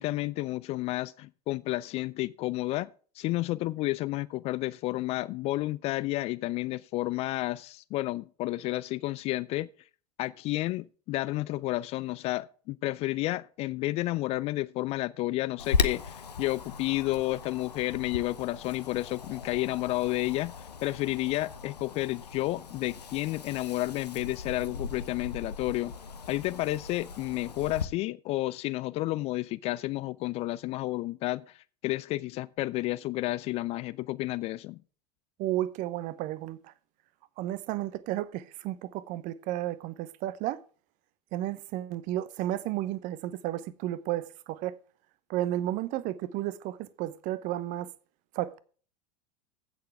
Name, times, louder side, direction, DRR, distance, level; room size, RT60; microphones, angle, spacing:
voice 1, 0.0-2.9 3.2-9.7 10.2-25.9 26.3-34.8, left 18 dB, 30° left, 0.4 m, -31 dB
Wind, 15.6-27.9, left 5 dB, 80° left, 0.9 m, -37 dB
voice 2, 35.4-36.6 37.4-40.6 41.3-44.8 45.3-47.9 48.3-48.6, right 14 dB, 40° right, 0.8 m, -32 dB
15.5 x 6.8 x 3.4 m
figure-of-eight pair, 85°, 21 cm